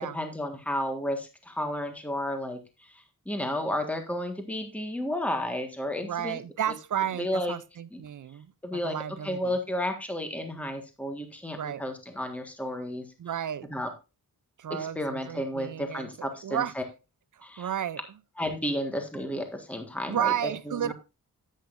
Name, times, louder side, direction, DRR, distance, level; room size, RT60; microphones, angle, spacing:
voice 1, 0.0-6.4 7.2-7.5 7.9-8.0 8.6-9.0 9.2-13.1 13.7-13.9 14.8-16.8 17.4-17.7 18.4-20.9, left 1 dB, 5° left, 1.6 m, -32 dB
voice 2, 6.0-9.6 11.5-11.8 13.2-13.7 14.6-16.7 17.3-18.0 20.1-20.9, right 10 dB, 60° right, 0.5 m, -32 dB
10.5 x 9.0 x 2.6 m
wide cardioid pair, 85°, 35 cm